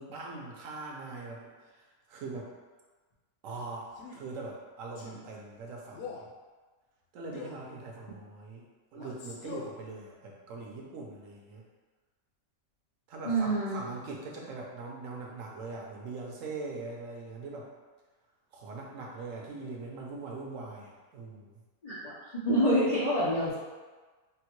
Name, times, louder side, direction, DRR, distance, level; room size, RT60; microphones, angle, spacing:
voice 1, 0.0-2.5 3.4-6.2 7.1-8.7 8.9-11.6 13.1-17.7 18.5-21.5, right 3 dB, 70° right, -1 dB, 0.9 m, -42 dB
Male speech man speaking, 3.9-4.3 5.0-5.2 5.9-6.3 7.3-7.7 8.9-9.8, left 5 dB, 70° left, 1.0 m, -43 dB
voice 2, 13.2-13.8 21.8-22.1 22.4-23.6, right 1 dB, 85° left, -8 dB, 0.3 m, -26 dB
3.7 x 2.1 x 2.9 m, 1.3 s
omnidirectional pair, 1.5 m